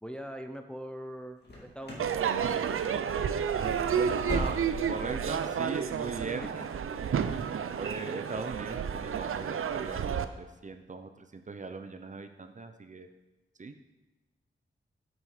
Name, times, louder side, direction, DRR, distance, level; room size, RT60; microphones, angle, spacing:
voice 1, 0.0-2.1, equal, 5° left, 6 dB, 0.5 m, -42 dB
sound 1, 1.4-2.2 2.4-2.9 3.2-3.3 3.7-5.0 5.3-5.4 5.9-6.0, left 1 dB, 55° left, 2.1 m, -39 dB
Crowd / Fireworks, 2.0-10.2, right 7 dB, 90° right, 0.5 m, -31 dB
voice 2, 3.6-4.6 4.9-6.7 7.3-7.4 7.8-13.1 13.6-13.8, right 3 dB, 35° right, 8 dB, 0.6 m, -39 dB
8.8 x 6.3 x 4.9 m, 1.1 s
wide cardioid pair, 135°, 21 cm